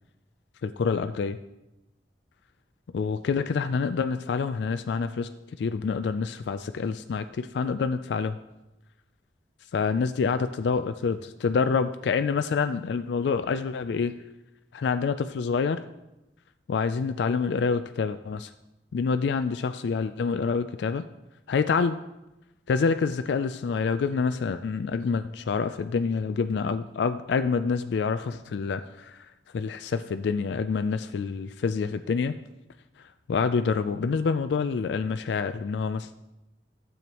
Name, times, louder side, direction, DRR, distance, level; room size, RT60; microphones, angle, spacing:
voice 1, 0.6-1.4 2.9-5.3 5.6-8.4 9.7-14.1 14.7-15.8 16.7-18.5 18.9-21.0 21.5-22.0 22.7-32.4 33.0-36.1, left 5 dB, 70° left, 10 dB, 0.3 m, -27 dB
12.0 x 7.8 x 3.0 m, 0.95 s
head